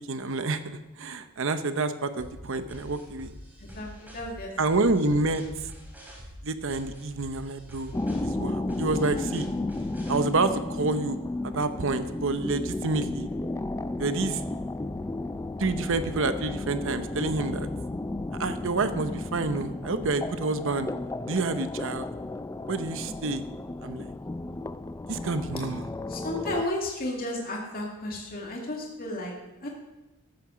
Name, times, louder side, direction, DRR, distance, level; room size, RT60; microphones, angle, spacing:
voice 1, 0.1-3.3 4.6-5.7 6.4-8.0 8.2-9.5 10.1-11.2 11.4-13.3 14.0-14.4 15.6-17.7 18.4-20.9 21.3-22.1 22.7-23.4 23.8-24.1 25.1-25.9, right 3 dB, 65° right, 10 dB, 0.8 m, -28 dB
sound 1, 2.2-10.2, equal, 10° right, 2.7 m, -45 dB
voice 2, 3.6-4.5 26.1-29.3 29.6-29.7, left 1 dB, 45° left, -1 dB, 2.2 m, -33 dB
sound 2, 7.9-26.6, left 2 dB, 15° left, 0.3 m, -33 dB
14.0 x 8.6 x 6.2 m, 1.0 s
head